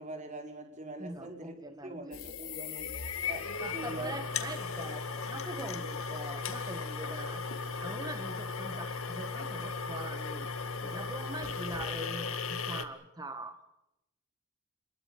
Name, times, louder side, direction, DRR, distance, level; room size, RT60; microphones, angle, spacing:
voice 1, 0.0-1.6 1.8-2.9 3.3-4.1, right 2 dB, 35° right, 4 dB, 5.0 m, -43 dB
voice 2, 1.0-2.0 3.6-7.5 7.8-13.6, right 2 dB, 20° right, 9 dB, 1.4 m, -43 dB
sound 1, 2.1-12.9, left 5 dB, 85° left, 2.2 m, -37 dB
28.0 x 22.0 x 6.8 m, 0.86 s
head